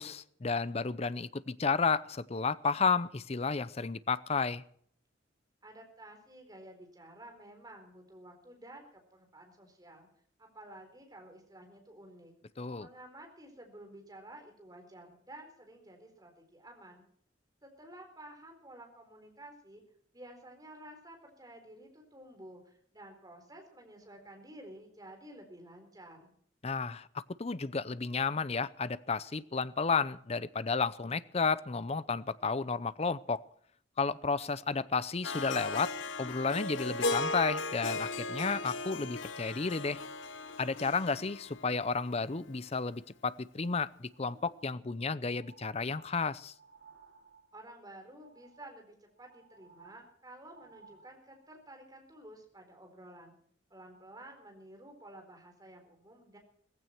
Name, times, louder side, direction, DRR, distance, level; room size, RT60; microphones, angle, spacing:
voice 1, 0.0-4.6 12.6-12.9 26.6-33.4 34.0-40.0 40.6-46.5, left 4 dB, 35° left, 17 dB, 0.6 m, -32 dB
voice 2, 5.6-10.1 10.4-12.3 12.8-17.1 17.6-19.8 20.1-26.3 47.5-53.3 53.7-56.4, right 1 dB, 20° right, 4 dB, 4.1 m, -52 dB
Harp, 35.2-42.4, left 3 dB, 80° left, 0.9 m, -37 dB
sound 1, 44.0-47.7 48.1-48.8 49.1-51.5 52.1-52.2, right 4 dB, 60° right, 5.0 m, -60 dB
17.0 x 15.5 x 4.5 m, 0.62 s
head